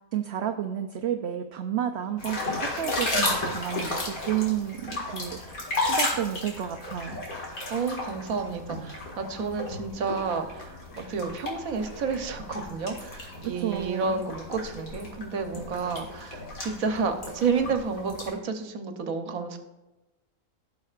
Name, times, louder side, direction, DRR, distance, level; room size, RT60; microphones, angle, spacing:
voice 1, 0.1-7.2 13.6-14.2, right 10 dB, 65° right, 5 dB, 0.7 m, -31 dB
sound 1, 2.2-18.3, left 2 dB, 90° left, 2.4 m, -34 dB
voice 2, 7.7-19.6, right 5 dB, 80° right, 7 dB, 1.3 m, -30 dB
16.5 x 6.3 x 2.4 m, 1.0 s
omnidirectional pair, 1.4 m